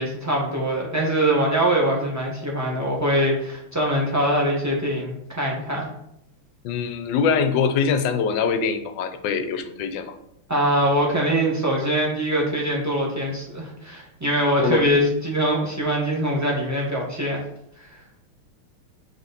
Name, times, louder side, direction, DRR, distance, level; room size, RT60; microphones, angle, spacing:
voice 1, 0.0-5.9 10.5-17.4 17.8-18.0, equal, 10° right, -3 dB, 1.2 m, -23 dB
voice 2, 6.6-10.1 14.6-14.8, left 6 dB, 70° left, 7 dB, 1.3 m, -23 dB
6.7 x 4.7 x 4.1 m, 0.77 s
omnidirectional pair, 2.3 m